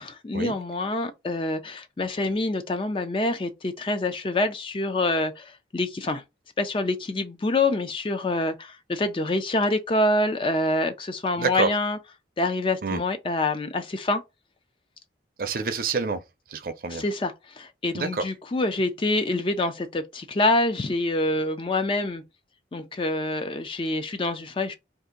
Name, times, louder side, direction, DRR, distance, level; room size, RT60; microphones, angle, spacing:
voice 1, 0.0-6.2 6.6-12.0 12.4-14.2 16.9-22.2 22.7-24.8, left 2 dB, 30° left, 0.4 m, -26 dB
voice 2, 11.4-11.7 12.8-13.0 15.4-16.2 16.5-17.0 17.9-18.3, right 4 dB, 50° right, 0.5 m, -27 dB
2.6 x 2.5 x 3.8 m
head